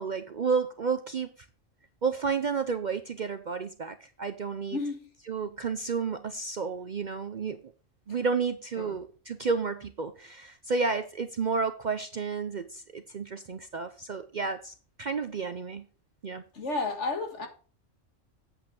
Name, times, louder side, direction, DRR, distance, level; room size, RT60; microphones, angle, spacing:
voice 1, 0.0-1.3 2.0-4.8 5.3-7.6 8.1-15.9 16.2-16.4, right 5 dB, 50° right, 0.6 m, -31 dB
voice 2, 4.7-5.1 8.8-9.0 16.5-17.5, left 3 dB, 65° left, 1.9 m, -32 dB
8.5 x 8.0 x 3.8 m
omnidirectional pair, 1.3 m